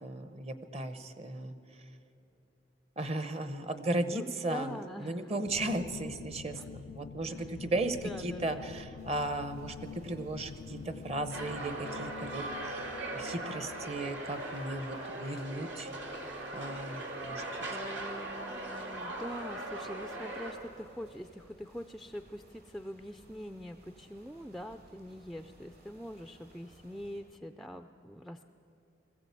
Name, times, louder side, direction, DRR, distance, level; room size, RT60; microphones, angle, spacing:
voice 1, 0.0-1.5 3.0-15.9 16.5-17.4, right 2 dB, 35° right, 10 dB, 0.9 m, -36 dB
voice 2, 4.1-5.3 6.5-6.7 7.3-7.5 7.8-8.8 17.7-28.5, equal, ahead, 7 dB, 0.4 m, -44 dB
sound 1, 5.4-14.9, left 7 dB, 90° left, 0.4 m, -47 dB
sound 2, 9.0-27.2, equal, 55° right, 5.7 m, -60 dB
sound 3, 11.3-20.5, right 1 dB, 75° right, 2.7 m, -39 dB
20.5 x 15.5 x 8.3 m, 2.7 s
head